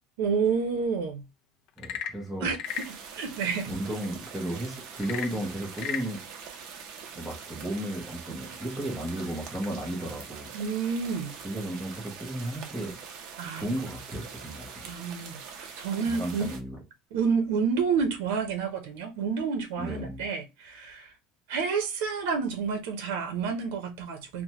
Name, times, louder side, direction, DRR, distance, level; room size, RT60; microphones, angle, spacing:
voice 1, 0.2-1.2 2.4-2.6 3.1-3.7 10.5-11.3 13.4-13.7 14.8-15.4 15.8-16.5 17.1-21.1 21.5-24.4, right 5 dB, 85° right, 0.7 m, -29 dB
Frog / Percussion / Wood, 1.7-3.0 5.0-6.1, left 9 dB, 40° left, 0.3 m, -35 dB
voice 2, 1.8-2.5 3.7-6.5 7.1-10.5 11.4-13.0 13.5-14.9 16.0-16.8 19.8-20.2, right 1 dB, ahead, 0.7 m, -34 dB
sound 1, 2.6-16.6, right 6 dB, 45° right, 0.6 m, -44 dB
3.3 x 2.1 x 2.8 m
cardioid pair, 180°, 0 cm